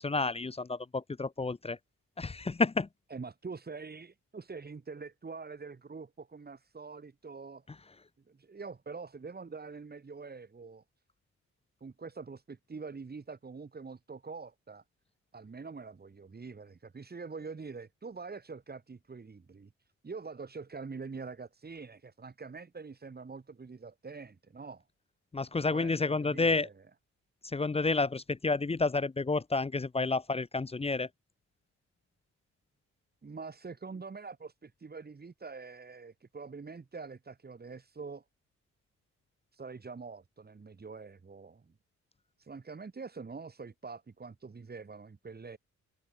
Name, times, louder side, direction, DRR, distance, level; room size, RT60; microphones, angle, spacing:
voice 1, 0.0-1.8 2.2-2.9 25.3-26.7 27.4-31.1, left 3 dB, 20° left, 0.9 m, -30 dB
voice 2, 3.1-7.6 8.3-10.8 11.8-14.8 15.3-24.8 25.7-26.7 33.2-38.2 39.5-41.7 42.4-45.6, right 4 dB, 30° right, 4.9 m, -45 dB
cardioid pair, 100°, 30 cm